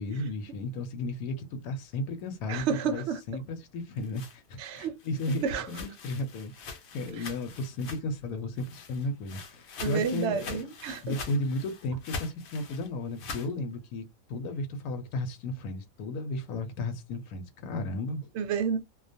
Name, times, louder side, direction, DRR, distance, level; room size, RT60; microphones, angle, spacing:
voice 1, 0.0-10.6 11.0-18.3, left 2 dB, 80° left, 1.0 m, -34 dB
voice 2, 2.5-3.2 4.6-5.0 5.4-5.7 9.8-11.1 18.4-18.8, right 6 dB, 65° right, 0.7 m, -30 dB
sound 1, 3.7-8.3 8.6-13.5, left 4 dB, 65° left, 0.7 m, -43 dB
2.3 x 2.2 x 2.5 m
omnidirectional pair, 1.5 m